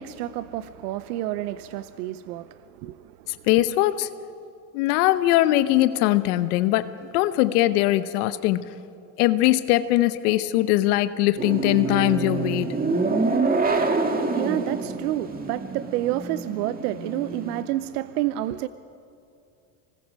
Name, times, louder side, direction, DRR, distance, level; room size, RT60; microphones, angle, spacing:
voice 1, 0.0-2.5 2.8-2.9 14.1-18.7, right 14 dB, 85° right, 14 dB, 0.7 m, -29 dB
voice 2, 3.5-4.1 4.7-8.7 9.2-12.8, left 15 dB, 80° left, 12 dB, 1.1 m, -21 dB
sound 1, 11.4-17.6, right 3 dB, 20° right, 1.8 m, -26 dB
26.0 x 20.0 x 6.3 m, 2.5 s
supercardioid pair, 115°, 45 cm